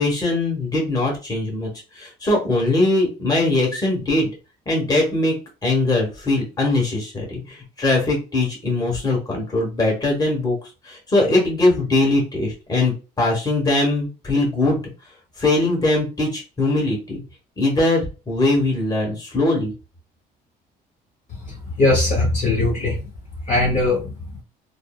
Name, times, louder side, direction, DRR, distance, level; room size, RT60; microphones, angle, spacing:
voice 1, 0.0-1.7 1.9-4.3 4.7-5.3 5.6-10.6 10.8-14.8 15.4-17.2 17.6-19.7, left 2 dB, 25° left, -1 dB, 1.3 m, -21 dB
voice 2, 21.5-23.0 23.5-24.1, left 2 dB, 50° left, -2 dB, 1.1 m, -20 dB
3.6 x 2.0 x 2.3 m, 0.31 s
cardioid pair, 110°, 17 cm